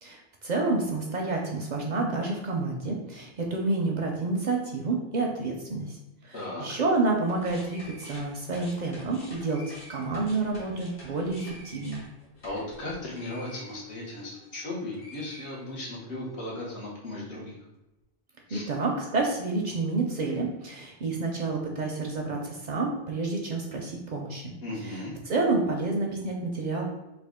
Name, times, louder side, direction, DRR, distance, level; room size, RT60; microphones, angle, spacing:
voice 1, 0.0-12.0 18.5-24.5 24.8-25.0 25.3-26.8, right 3 dB, 55° right, 0 dB, 0.5 m, -29 dB
voice 2, 6.3-6.7 12.4-17.6 18.5-18.6 24.6-25.1, left 1 dB, 90° left, -4 dB, 1.4 m, -36 dB
sound 1, 7.3-14.6 14.9-16.1, left 1 dB, 65° left, 1.2 m, -48 dB
3.4 x 2.4 x 3.5 m, 0.97 s
omnidirectional pair, 1.1 m